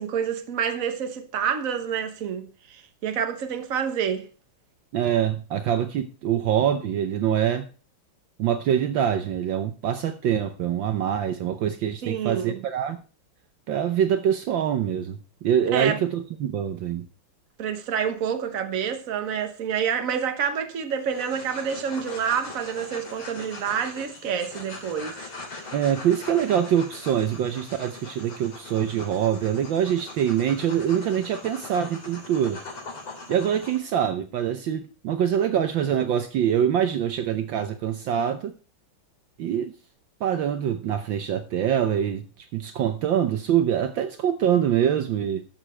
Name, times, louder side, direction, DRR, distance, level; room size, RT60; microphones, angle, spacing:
voice 1, 0.0-4.3 12.0-12.6 15.7-16.0 17.6-25.2, right 7 dB, 45° right, 1.4 m, -28 dB
voice 2, 4.9-7.7 8.4-13.0 13.7-17.1 25.7-32.6 33.3-38.5 39.4-39.7 40.2-45.4, right 9 dB, 70° right, 1.4 m, -24 dB
sound 1, 21.0-33.8, left 3 dB, 70° left, 3.9 m, -41 dB
12.5 x 6.6 x 4.4 m
omnidirectional pair, 2.4 m